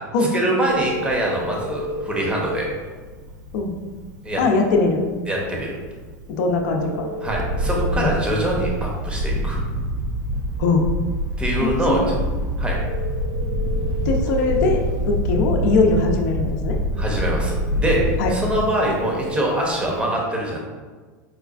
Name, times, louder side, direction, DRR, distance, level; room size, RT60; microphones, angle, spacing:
voice 1, 0.3-2.7 4.2-4.4 5.3-5.8 7.2-9.6 11.4-12.2 12.6-12.8 17.0-20.6, right 1 dB, 10° right, -2 dB, 0.7 m, -24 dB
Telephone, 0.6-20.0, left 1 dB, 75° right, 0.8 m, -36 dB
voice 2, 4.4-5.1 6.4-7.1 8.0-8.1 10.6-10.9 11.6-12.1 14.1-16.8 18.2-18.3, left 3 dB, 65° left, 2 dB, 0.5 m, -21 dB
Wind, 7.3-18.6, equal, 35° right, 0.4 m, -25 dB
4.8 x 2.3 x 2.4 m, 1.4 s
supercardioid pair, 120°, 10 cm